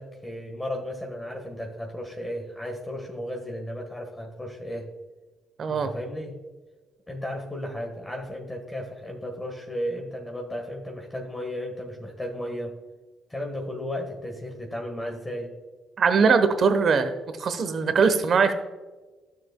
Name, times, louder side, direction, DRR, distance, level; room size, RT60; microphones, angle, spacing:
voice 1, 0.0-4.9 5.7-6.4 7.1-12.8 13.3-15.5, left 1 dB, 15° left, 1 dB, 1.4 m, -34 dB
voice 2, 5.6-5.9 16.0-17.1 17.4-18.5, right 5 dB, 55° right, 9 dB, 1.0 m, -21 dB
12.5 x 6.8 x 2.2 m, 1.2 s
cardioid pair, 90°, 0 cm